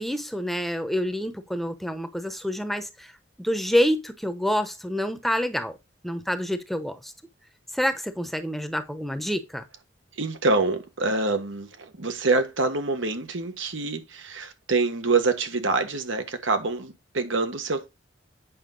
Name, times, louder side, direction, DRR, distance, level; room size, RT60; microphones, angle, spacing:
voice 1, 0.0-3.1 3.4-5.8 6.0-7.1 7.7-9.6, equal, ahead, 0.8 m, -27 dB
voice 2, 10.2-17.9, right 3 dB, 85° right, 1.5 m, -26 dB
8.6 x 5.5 x 3.8 m
head